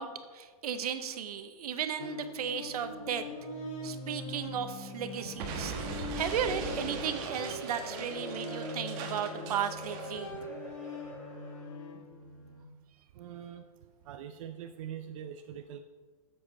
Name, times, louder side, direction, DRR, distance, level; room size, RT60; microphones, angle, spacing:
voice 1, 0.0-3.3 3.8-10.3, right 8 dB, 75° right, 9 dB, 1.0 m, -35 dB
sound 1, 2.0-12.6, left 2 dB, 55° left, 1.5 m, -42 dB
Explosion, 5.4-10.2, right 5 dB, 35° right, 1.3 m, -40 dB
sound 2, 6.2-11.7, right 2 dB, 5° left, 2.5 m, -45 dB
voice 2, 13.1-13.6 14.0-15.8, right 9 dB, 55° right, 7 dB, 0.5 m, -43 dB
11.0 x 7.7 x 4.1 m, 1.5 s
hypercardioid pair, 150°, 19 cm